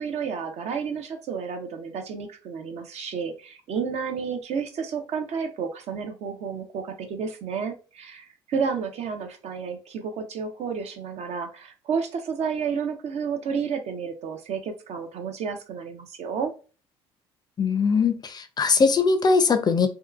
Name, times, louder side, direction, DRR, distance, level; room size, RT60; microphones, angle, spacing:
voice 1, 0.0-16.5, right 6 dB, 55° right, 5 dB, 0.6 m, -31 dB
voice 2, 17.6-19.9, left 4 dB, 30° left, 9 dB, 0.5 m, -21 dB
2.7 x 2.3 x 2.3 m, 0.35 s
hypercardioid pair, 60°, 13 cm